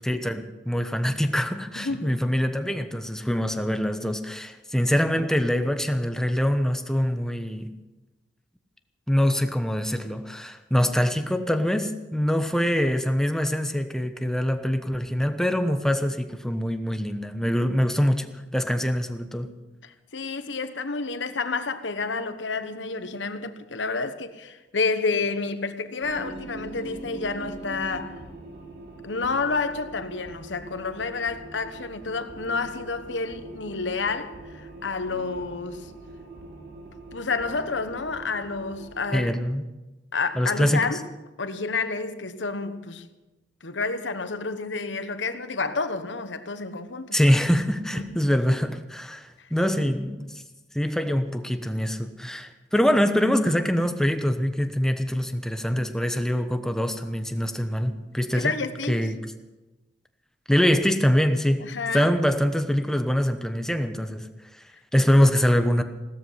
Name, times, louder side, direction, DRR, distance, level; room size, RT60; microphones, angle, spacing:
voice 1, 0.0-7.7 9.1-18.3 18.5-19.5 39.1-39.6 40.3-40.8 47.1-50.3 50.7-58.5 58.9-59.2 60.5-61.6 61.9-64.3 64.9-65.8, equal, 5° left, 1.0 m, -24 dB
voice 2, 1.7-2.3 12.5-12.6 19.8-28.2 29.0-35.9 37.1-39.3 40.1-41.1 41.4-43.1 43.6-47.1 47.9-48.2 49.4-49.5 58.3-59.0 61.6-62.1 65.1-65.3, left 4 dB, 85° left, 1.2 m, -30 dB
sound 1, 26.0-39.2, right 2 dB, 65° right, 3.1 m, -42 dB
17.5 x 13.0 x 5.8 m
head